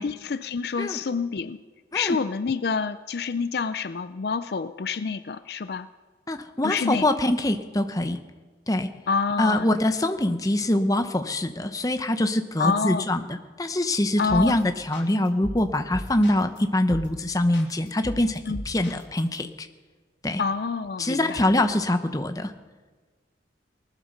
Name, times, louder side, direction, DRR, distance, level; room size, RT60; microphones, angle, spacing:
voice 1, 0.0-1.6 1.9-5.9 6.6-7.1 9.1-9.7 12.6-13.1 14.2-14.6 18.5-18.6 20.4-21.6, left 5 dB, 55° left, 13 dB, 0.4 m, -27 dB
voice 2, 6.3-8.2 8.7-8.9 9.4-19.7 20.2-20.4 21.0-22.5, left 1 dB, 20° left, 8 dB, 0.8 m, -24 dB
sound 1, 14.3-14.6 14.9-16.6 16.9-17.2 17.5-19.4, left 1 dB, 75° left, 3.0 m, -37 dB
19.5 x 11.0 x 6.5 m, 1.4 s
head